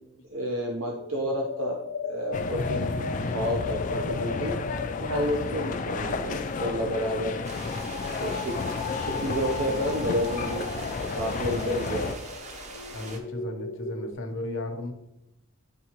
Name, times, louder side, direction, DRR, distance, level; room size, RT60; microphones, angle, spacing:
voice 1, 0.3-3.0 3.3-4.6 5.0-7.4 8.2-10.7 11.1-12.2, equal, 75° right, 0 dB, 0.7 m, -30 dB
sound 1, 0.8-14.1, left 4 dB, 90° left, 0.8 m, -37 dB
sound 2, 2.3-12.1, left 4 dB, 35° left, 0.3 m, -32 dB
sound 3, 7.4-13.2, right 2 dB, 35° right, 0.7 m, -43 dB
voice 2, 12.9-14.9, left 2 dB, 65° left, 4 dB, 0.8 m, -34 dB
9.5 x 3.6 x 2.9 m, 0.90 s
head